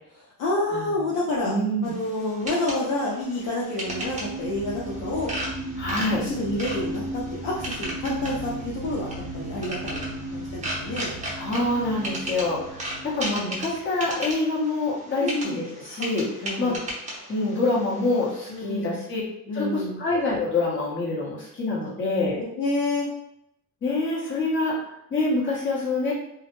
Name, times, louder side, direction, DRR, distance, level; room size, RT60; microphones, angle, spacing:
voice 1, 0.1-1.5 1.8-5.3 5.8-11.2 15.2-15.6 16.4-16.8 18.5-19.0 19.5-20.0 22.6-23.1, left 2 dB, 55° left, -5 dB, 0.6 m, -29 dB
voice 2, 1.4-1.9 5.8-6.3 11.4-12.8 13.0-16.8 17.3-19.2 19.5-22.4 23.8-26.1, left 2 dB, 30° left, -5 dB, 1.0 m, -26 dB
sound 1, 1.8-18.6, right 1 dB, 20° right, 0.8 m, -37 dB
sound 2, 3.8-13.9 14.5-14.6, right 1 dB, 60° right, 0.7 m, -36 dB
2.3 x 2.1 x 3.0 m, 0.80 s
cardioid pair, 130°, 37 cm